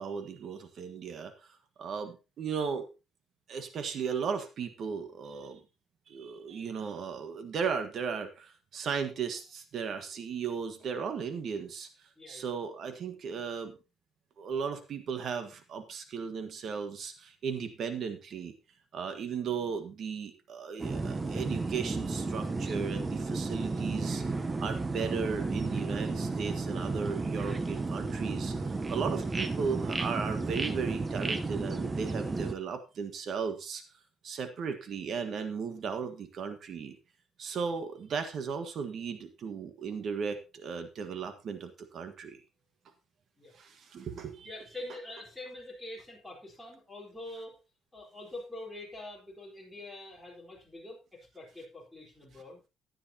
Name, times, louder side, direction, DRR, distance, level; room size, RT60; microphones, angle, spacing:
voice 1, 0.0-1.5 1.8-2.9 3.5-5.6 6.1-11.9 12.3-13.8 14.4-18.5 18.9-24.2 24.6-33.8 34.2-37.0 37.4-42.4 43.5-44.5, right 6 dB, 55° right, 8 dB, 1.5 m, -36 dB
voice 2, 12.2-12.5 43.4-43.5 44.4-47.6 47.9-52.6, left 2 dB, 5° left, -4 dB, 4.1 m, -45 dB
sound 1, 20.8-32.5, right 3 dB, 20° right, 0.9 m, -33 dB
14.5 x 10.0 x 2.9 m, 0.28 s
cardioid pair, 130°, 0 cm